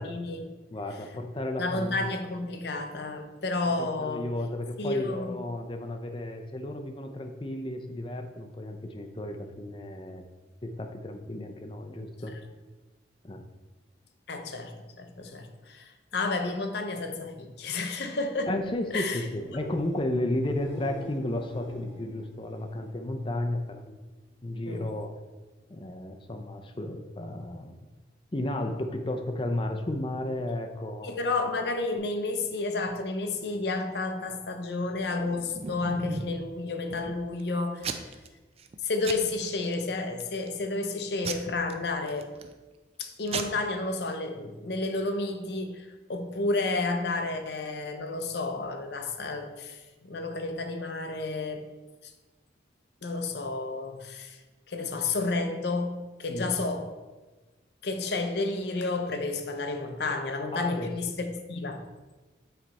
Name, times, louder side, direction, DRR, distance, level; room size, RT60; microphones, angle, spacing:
voice 1, 0.0-0.5 1.6-4.2 4.8-5.4 14.3-18.5 18.9-19.3 24.7-24.9 31.0-38.0 38.8-42.3 43.0-51.7 52.0-52.1 53.0-54.4 54.7-56.9 57.8-61.9, left 3 dB, 60° left, 6 dB, 0.7 m, -31 dB
voice 2, 0.7-2.1 3.8-10.2 10.6-12.4 13.2-13.4 18.5-24.0 24.4-25.1 25.7-27.8 28.3-31.2 56.3-56.5 60.5-60.9, left 1 dB, 25° left, 5 dB, 0.5 m, -33 dB
sound 1, 18.2-24.0 24.3-24.9 32.0-32.1, equal, 80° left, 1.1 m, -48 dB
Packing tape duct tape / Tearing, 35.1-36.4 36.9-37.4 37.8-38.3 38.6-38.8 39.0-39.7 40.2-40.6 41.2-42.5 43.0-43.1 43.3-43.4, right 4 dB, 35° right, 0.4 m, -36 dB
8.7 x 3.4 x 4.1 m, 1.2 s
head